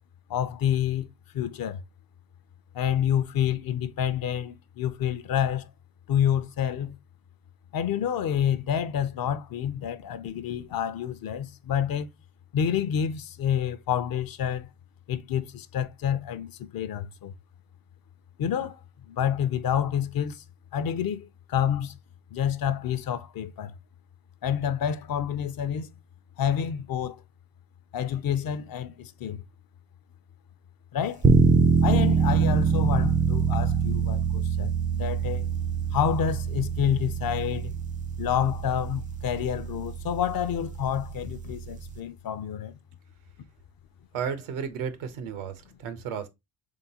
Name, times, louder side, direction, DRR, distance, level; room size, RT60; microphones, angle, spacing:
voice 1, 0.3-1.1 1.3-1.8 2.7-5.7 6.1-7.0 7.7-12.1 12.5-14.7 15.1-17.3 18.4-18.8 19.1-20.4 20.7-21.9 22.3-23.7 24.4-25.9 26.4-27.2 27.9-29.4 30.9-31.2 31.8-35.5 35.9-37.7 38.2-42.7, left 9 dB, 50° left, 0.6 m, -28 dB
sound 1, 31.2-42.0, right 5 dB, 20° right, 0.4 m, -25 dB
voice 2, 44.1-46.3, right 7 dB, 85° right, 0.9 m, -33 dB
3.7 x 3.5 x 2.8 m
supercardioid pair, 70°, 48 cm